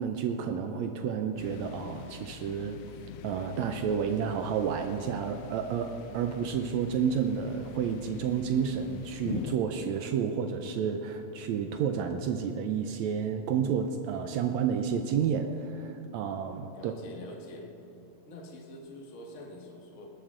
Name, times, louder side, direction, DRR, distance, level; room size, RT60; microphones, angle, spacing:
voice 1, 0.0-2.8 3.2-16.9, right 7 dB, 75° right, 6 dB, 1.8 m, -30 dB
sound 1, 1.4-9.6, left 11 dB, 85° left, 2.0 m, -45 dB
voice 2, 16.7-17.7 18.3-20.1, left 1 dB, 35° left, 0 dB, 1.3 m, -45 dB
19.5 x 12.0 x 3.8 m, 2.8 s
omnidirectional pair, 3.4 m